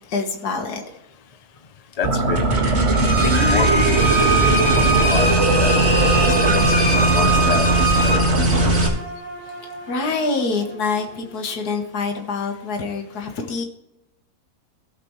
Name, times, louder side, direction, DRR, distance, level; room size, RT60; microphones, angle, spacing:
voice 1, 0.1-0.8 9.5-13.6, left 4 dB, 80° left, 1.9 m, -26 dB
voice 2, 2.0-2.7 3.2-5.3 5.6-6.1 6.4-8.7, left 6 dB, 40° left, 0.5 m, -29 dB
sound 1, 2.0-8.9, right 2 dB, 45° right, 2.0 m, -18 dB
Bowed string instrument, 2.9-8.2, right 3 dB, 5° right, 1.9 m, -22 dB
sound 2, 5.8-11.7, right 3 dB, 70° right, 4.0 m, -35 dB
17.5 x 6.8 x 3.1 m
omnidirectional pair, 1.6 m